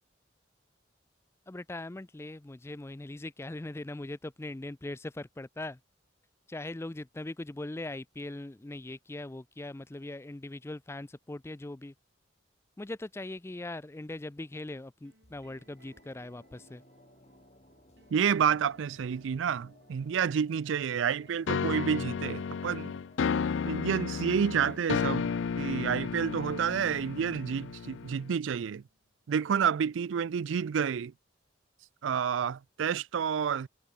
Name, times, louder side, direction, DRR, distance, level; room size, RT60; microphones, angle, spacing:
voice 1, 1.5-5.8 6.5-11.9 12.8-16.8, left 2 dB, 15° left, 0.4 m, -40 dB
sound 1, 15.1-29.7, right 1 dB, 60° right, 7.2 m, -63 dB
sound 2, 15.2-28.3 28.6-28.7, left 1 dB, 35° left, 3.6 m, -61 dB
voice 2, 18.1-22.9 23.7-28.8 29.3-31.1 32.0-33.7, right 7 dB, 85° right, 0.4 m, -29 dB
sound 3, 21.5-28.3, left 6 dB, 75° left, 0.4 m, -33 dB
head